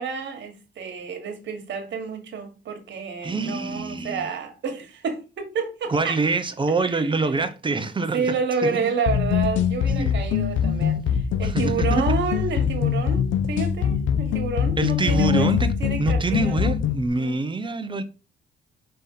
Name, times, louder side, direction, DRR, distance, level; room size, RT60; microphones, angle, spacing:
voice 1, 0.0-6.2 6.8-7.4 8.1-15.5 15.8-16.7 17.2-17.4, right 5 dB, 65° right, 1.8 m, -29 dB
voice 2, 3.2-4.3 5.9-8.3 8.6-8.9 10.0-10.2 11.4-12.1 14.8-15.7 16.0-18.0, right 3 dB, 25° right, 0.8 m, -25 dB
sound 1, 9.1-17.1, left 8 dB, 75° left, 0.8 m, -23 dB
5.7 x 3.4 x 5.5 m
cardioid pair, 90°, 20 cm